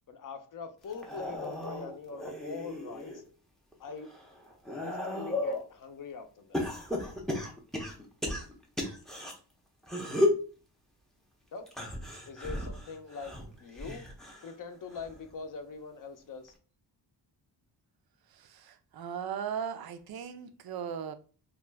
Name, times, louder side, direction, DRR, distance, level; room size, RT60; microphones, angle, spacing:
voice 1, 0.1-3.2 3.8-4.1 4.8-6.7 11.5-11.7 12.3-14.1 14.4-16.5, left 5 dB, 50° left, 0.6 m, -43 dB
sound 1, 0.9-3.2 3.7-5.7 6.5-9.3 9.8-10.5 11.7-14.5 14.9-15.3 16.5-16.6, left 1 dB, ahead, 0.5 m, -34 dB
voice 2, 18.3-21.1, right 7 dB, 60° right, 0.5 m, -38 dB
2.4 x 2.2 x 3.2 m
wide cardioid pair, 110°, 43 cm